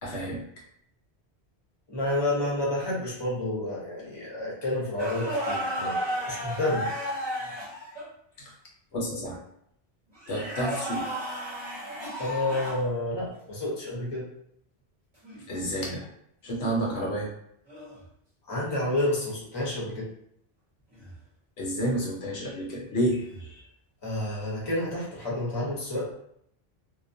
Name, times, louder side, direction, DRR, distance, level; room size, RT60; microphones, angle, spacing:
voice 1, 0.0-0.4 8.9-9.4 10.3-11.1 15.5-16.1 16.4-17.3 21.6-23.6, right 1 dB, 75° left, -2 dB, 0.9 m, -30 dB
voice 2, 1.9-6.9 12.2-14.3 18.5-20.1 24.0-26.1, left 1 dB, 25° left, -5 dB, 0.7 m, -30 dB
Content warning, 5.0-8.1 10.2-12.9 15.2-15.4 17.7-18.0 20.9-21.1 23.2-23.5, equal, 25° right, 0.8 m, -33 dB
2.3 x 2.1 x 2.5 m, 0.72 s
omnidirectional pair, 1.1 m